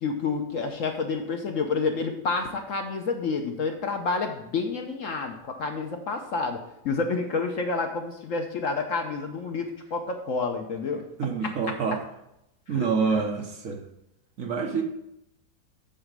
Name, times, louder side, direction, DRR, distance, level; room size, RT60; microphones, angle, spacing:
voice 1, 0.0-6.6 6.8-11.1 11.4-11.5 12.7-12.9, left 4 dB, 60° left, 4 dB, 1.0 m, -29 dB
voice 2, 11.2-12.0 12.7-13.8 14.4-14.8, right 5 dB, 55° right, 2 dB, 1.2 m, -27 dB
8.1 x 4.3 x 6.5 m, 0.82 s
omnidirectional pair, 1.8 m